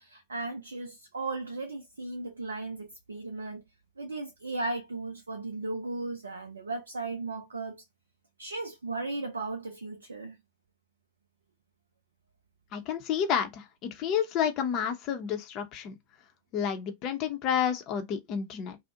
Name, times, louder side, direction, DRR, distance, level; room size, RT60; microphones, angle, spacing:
voice 1, 0.0-3.6 4.0-7.8 8.4-10.4, right 3 dB, 75° right, 0.3 m, -36 dB
voice 2, 12.7-16.0 16.5-18.8, left 8 dB, 40° left, 0.6 m, -30 dB
2.5 x 2.0 x 2.7 m
figure-of-eight pair, 90°, 0 cm